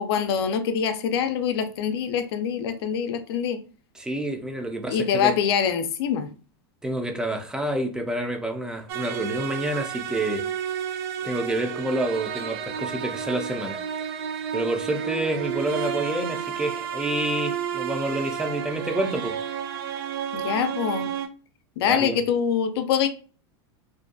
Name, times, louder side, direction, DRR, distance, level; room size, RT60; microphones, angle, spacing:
voice 1, 0.0-3.6 4.9-6.3 20.3-21.1 21.8-23.1, left 7 dB, 75° left, 0.4 m, -24 dB
voice 2, 3.9-5.4 6.8-10.4 11.2-13.8 14.5-19.3 21.8-22.2, right 1 dB, 5° right, 0.4 m, -28 dB
sound 1, 8.9-21.3, right 8 dB, 65° right, 0.4 m, -31 dB
2.5 x 2.2 x 2.5 m
supercardioid pair, 130°, 13 cm